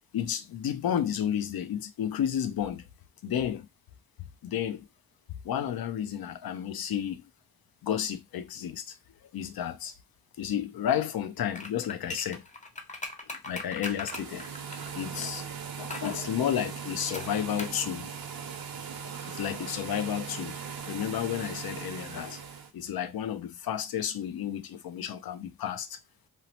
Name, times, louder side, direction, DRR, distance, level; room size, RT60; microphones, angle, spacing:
voice 1, 0.1-2.8 3.2-3.7 4.4-4.9 5.4-7.3 7.8-9.0 9.3-9.9 10.4-12.4 13.5-14.5 14.9-15.4 15.8-18.1 19.0-20.5 20.9-22.4 22.7-26.0, left 9 dB, 70° left, 0.5 m, -32 dB
sound 1, 11.5-15.3 15.9-16.2 17.1-17.8 18.1-18.2, left 2 dB, 20° left, 0.7 m, -39 dB
sound 2, 13.8-22.7, right 7 dB, 70° right, 0.7 m, -39 dB
2.8 x 2.0 x 2.8 m
cardioid pair, 55°, 37 cm